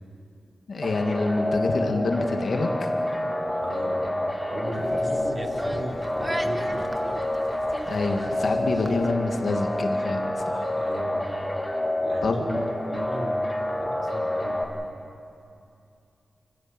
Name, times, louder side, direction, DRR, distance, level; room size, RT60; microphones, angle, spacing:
voice 1, 0.7-2.9 7.9-10.7 12.2-12.4, left 3 dB, 65° left, 3 dB, 2.5 m, -27 dB
sound 1, 0.8-14.6, left 1 dB, 10° left, 2.6 m, -28 dB
voice 2, 3.5-4.1 4.5-6.9 10.8-11.3 12.0-13.4 13.7-14.6, right 1 dB, 55° right, 0 dB, 4.5 m, -35 dB
sound 2, 4.8-9.1, right 1 dB, 15° right, 1.5 m, -38 dB
30.0 x 15.0 x 8.1 m, 2.5 s
wide cardioid pair, 100°, 0 cm